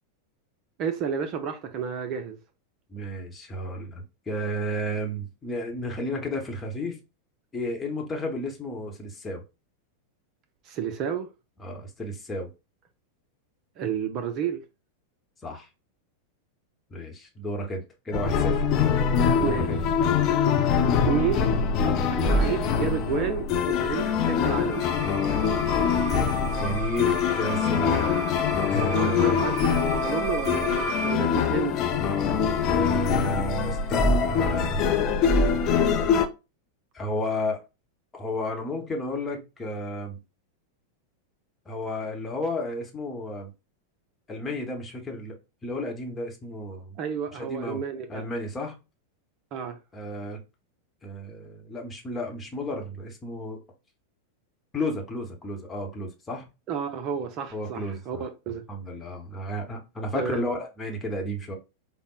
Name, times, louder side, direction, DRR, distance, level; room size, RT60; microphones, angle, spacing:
voice 1, 0.8-2.4 10.7-11.3 13.8-14.6 19.4-19.7 21.0-21.5 21.8-24.9 29.0-31.7 47.0-48.2 49.5-49.8 56.7-58.6 60.1-60.4, right 7 dB, 35° right, 0.5 m, -31 dB
voice 2, 2.9-7.0 7.5-9.4 11.6-12.5 15.4-15.7 16.9-18.7 19.2-19.8 26.6-29.4 32.6-34.8 36.9-37.6 38.1-40.2 41.7-43.5 44.3-45.4 45.6-46.9 47.3-47.8 48.1-48.8 49.9-50.4 51.0-53.6 54.7-56.5 57.5-58.3 58.7-61.6, equal, 15° left, 0.9 m, -32 dB
sound 1, 18.1-36.3, left 6 dB, 35° left, 0.4 m, -24 dB
sound 2, 24.7-31.2, right 5 dB, 60° right, 1.2 m, -35 dB
5.0 x 2.0 x 2.3 m
figure-of-eight pair, 90°, 0 cm